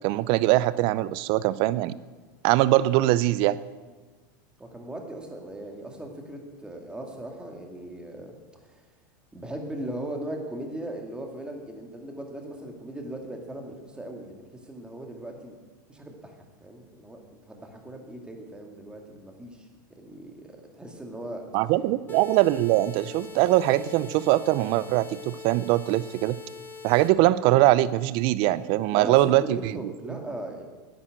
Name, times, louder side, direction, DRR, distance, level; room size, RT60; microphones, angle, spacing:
voice 1, 0.0-2.0 2.4-3.6 21.5-26.4 26.8-29.6, right 16 dB, 55° right, 17 dB, 0.6 m, -22 dB
voice 2, 4.6-8.3 8.6-8.8 9.3-15.6 15.9-16.3 16.6-19.7 20.0-21.4 28.9-30.6, right 1 dB, 10° right, 2 dB, 2.3 m, -38 dB
sound 1, 22.1-27.1, left 5 dB, 20° left, 1.6 m, -43 dB
10.0 x 9.9 x 7.8 m, 1.3 s
hypercardioid pair, 115°, 11 cm